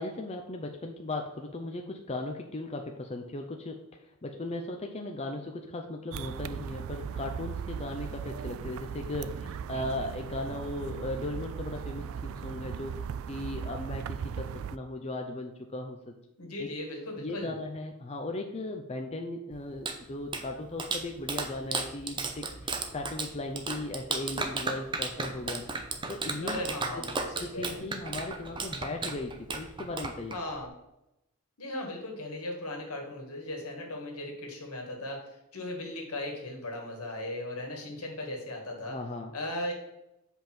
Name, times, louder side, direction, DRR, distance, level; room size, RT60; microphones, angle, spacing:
voice 1, 0.0-3.9 4.2-13.0 13.3-16.0 16.6-16.7 17.2-25.6 26.1-26.6 27.0-27.1 27.4-30.4 38.8-39.3, left 2 dB, 30° left, 3 dB, 0.6 m, -37 dB
sound 1, 6.1-14.8, right 7 dB, 65° right, 0.3 m, -38 dB
voice 2, 16.4-17.5 26.4-27.8 30.3-30.7 31.6-39.0 39.3-39.7, left 1 dB, 75° left, 2 dB, 1.9 m, -37 dB
Clapping, 19.5-30.7, right 3 dB, 20° right, 0.7 m, -35 dB
7.7 x 5.3 x 4.5 m, 0.87 s
head